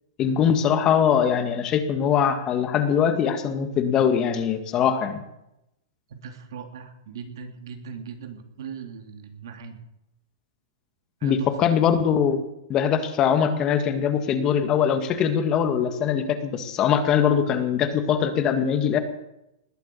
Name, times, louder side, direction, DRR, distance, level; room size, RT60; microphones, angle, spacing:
voice 1, 0.2-5.2 11.2-12.4 12.7-19.0, left 8 dB, 25° left, 9 dB, 1.7 m, -22 dB
voice 2, 6.1-9.8 11.2-11.5, right 6 dB, 70° right, 6 dB, 2.8 m, -39 dB
20.0 x 8.3 x 8.5 m, 0.87 s
hypercardioid pair, 145°, 2 cm